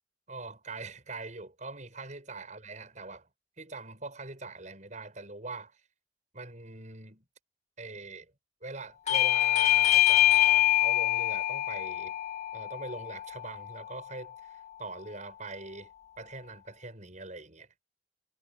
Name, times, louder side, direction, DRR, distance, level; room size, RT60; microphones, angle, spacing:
voice 1, 0.3-3.3 3.6-5.7 6.3-7.2 7.8-8.3 8.6-12.1 12.5-15.9 16.2-17.7, right 3 dB, 40° right, 6.7 m, -43 dB
Bell / Doorbell, 9.1-14.2, left 14 dB, 35° left, 2.9 m, -25 dB
head